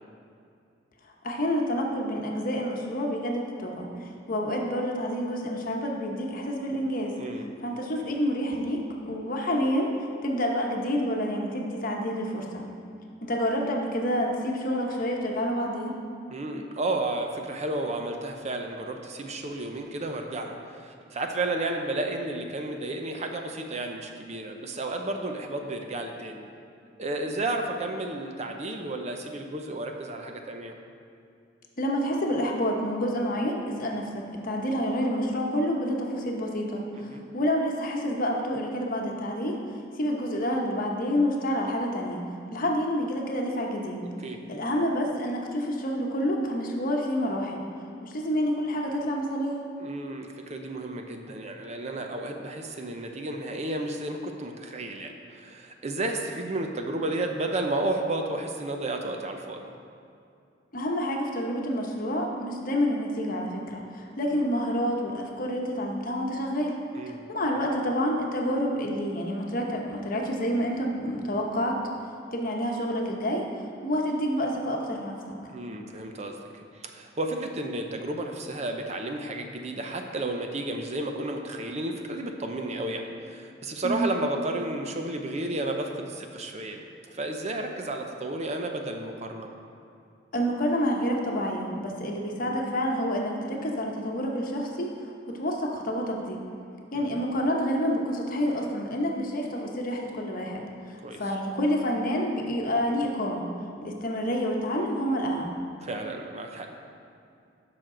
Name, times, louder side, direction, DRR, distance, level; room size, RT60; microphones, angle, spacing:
voice 1, 1.2-7.1 7.6-9.9 10.2-12.6 13.2-16.0 31.8-39.6 40.0-42.2 42.5-44.0 44.5-47.6 48.0-49.7 60.7-66.8 67.1-71.8 72.3-73.4 73.8-75.2 83.8-84.1 90.3-96.4 96.9-103.4 103.8-105.6, equal, 50° left, 0 dB, 1.0 m, -28 dB
voice 2, 16.3-26.4 27.0-30.7 36.9-37.2 44.2-44.4 49.8-59.6 66.9-67.2 75.5-86.8 87.1-89.5 92.4-92.6 96.9-97.2 101.0-101.2 105.8-106.7, right 2 dB, 35° right, 3 dB, 0.6 m, -32 dB
11.5 x 6.0 x 3.8 m, 2.4 s
head